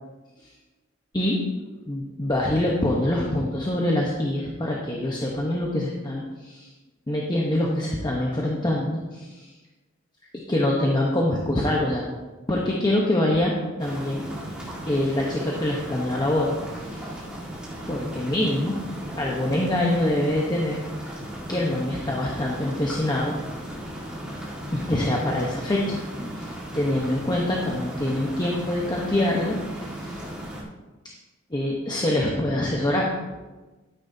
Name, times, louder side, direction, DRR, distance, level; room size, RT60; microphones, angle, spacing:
voice 1, 1.9-6.7 7.1-9.5 10.5-12.0 12.5-14.2 14.9-17.2 17.9-18.8 19.2-20.8 21.5-23.3 24.7-26.0 26.3-30.2 31.5-33.1, left 1 dB, 20° left, -2 dB, 1.1 m, -25 dB
sound 1, 13.8-30.6, equal, 5° right, 1.9 m, -36 dB
12.0 x 9.8 x 2.8 m, 1.2 s
head